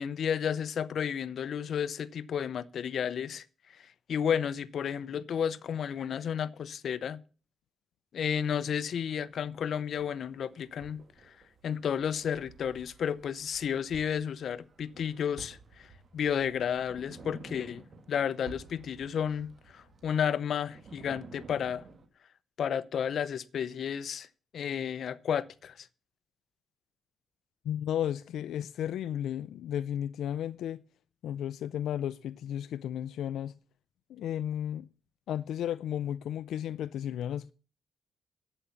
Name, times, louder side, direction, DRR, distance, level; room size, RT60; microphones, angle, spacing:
voice 1, 0.0-3.4 4.1-7.2 8.1-11.0 11.6-15.6 16.1-17.8 18.1-21.9 22.6-24.3 24.5-25.9, left 8 dB, 60° left, 0.8 m, -32 dB
sound 1, 8.6-22.1, right 4 dB, 40° right, 2.8 m, -53 dB
voice 2, 27.6-30.8 31.2-33.5 34.1-34.9 35.3-37.5, left 10 dB, 85° left, 0.5 m, -34 dB
11.0 x 9.1 x 7.1 m
cardioid pair, 125°, 0 cm